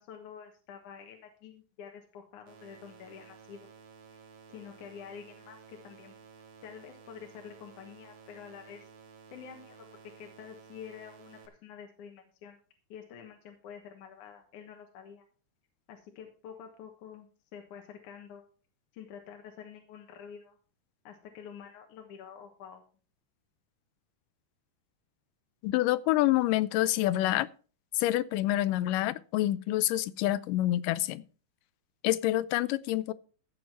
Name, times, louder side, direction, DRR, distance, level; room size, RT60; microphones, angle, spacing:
voice 1, 0.0-3.7 4.5-6.2 6.6-8.9 9.3-12.6 12.9-15.2 15.9-18.4 18.9-20.6 21.0-22.8, left 7 dB, 70° left, 2.7 m, -48 dB
sound 1, 2.5-11.5, right 6 dB, 90° right, 3.4 m, -54 dB
voice 2, 25.6-27.5 28.0-31.2 32.0-33.1, left 15 dB, 90° left, 2.3 m, -27 dB
14.0 x 7.4 x 4.6 m
omnidirectional pair, 3.7 m